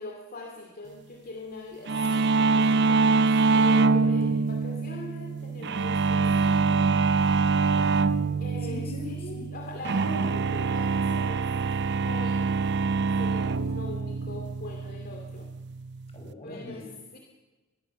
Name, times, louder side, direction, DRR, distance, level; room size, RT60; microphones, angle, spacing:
voice 1, 0.0-7.1 8.4-11.5 11.9-12.5 13.2-15.5 16.4-17.2, left 2 dB, 50° left, 1 dB, 2.5 m, -42 dB
sound 1, 1.9-16.3, right 4 dB, 60° right, 0.7 m, -25 dB
voice 2, 4.0-4.4 7.7-9.5 16.1-17.0, left 3 dB, 30° left, 2 dB, 5.9 m, -42 dB
23.5 x 20.5 x 7.1 m, 1.2 s
head